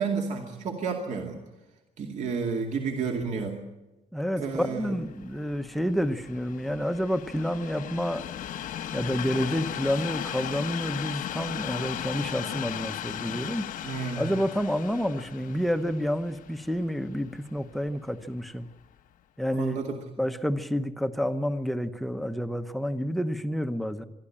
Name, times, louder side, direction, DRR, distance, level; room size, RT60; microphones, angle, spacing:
voice 1, 0.0-1.4 2.0-3.6 4.4-4.9 13.8-14.3 19.5-20.0, right 5 dB, 60° right, 1 dB, 2.4 m, -31 dB
voice 2, 4.1-8.2 8.9-13.7 14.2-18.7 19.4-19.8 20.2-24.0, equal, ahead, 10 dB, 0.8 m, -29 dB
Train, 4.9-18.1 18.8-18.9, left 11 dB, 85° left, 0.9 m, -37 dB
23.5 x 13.0 x 8.7 m, 1.0 s
cardioid pair, 170°, 14 cm